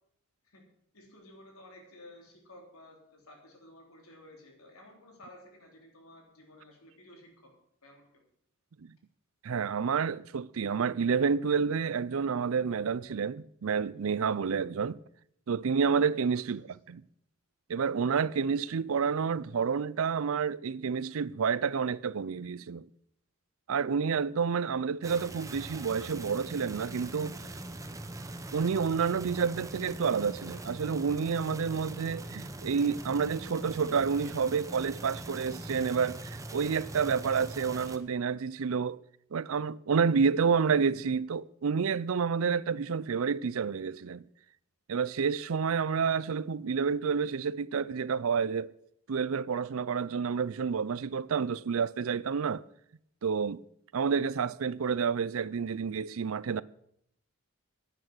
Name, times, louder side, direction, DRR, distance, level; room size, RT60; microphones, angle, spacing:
voice 1, 0.9-7.5 7.8-8.3, left 1 dB, 85° left, 3.5 m, -54 dB
voice 2, 9.4-15.0 15.5-17.0 17.7-22.8 23.7-27.4 28.5-39.0 39.3-44.2 44.9-48.7 49.1-52.6 53.2-53.6 53.9-56.6, right 6 dB, 75° right, 0.5 m, -29 dB
sound 1, 25.0-38.0, right 2 dB, 15° right, 0.8 m, -42 dB
10.5 x 8.9 x 7.8 m
head